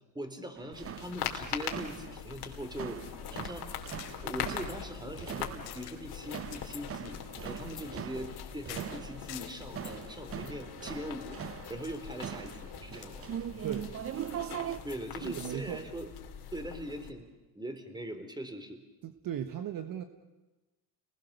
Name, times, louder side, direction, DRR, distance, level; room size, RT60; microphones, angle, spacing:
voice 1, 0.1-3.7 4.2-11.4 11.7-13.2 14.8-16.1 16.5-18.8, equal, 10° right, 8 dB, 3.8 m, -41 dB
sound 1, 0.6-14.8, right 10 dB, 30° right, 0.7 m, -42 dB
sound 2, 0.7-17.1, left 9 dB, 55° left, 3.3 m, -42 dB
sound 3, 3.7-9.6 10.0-14.0, left 12 dB, 85° left, 3.1 m, -51 dB
voice 2, 13.6-13.9 14.3-14.4 15.2-15.8 19.0-20.0, right 10 dB, 45° right, 8 dB, 1.6 m, -37 dB
30.0 x 21.0 x 6.9 m, 1.1 s
supercardioid pair, 95°, 46 cm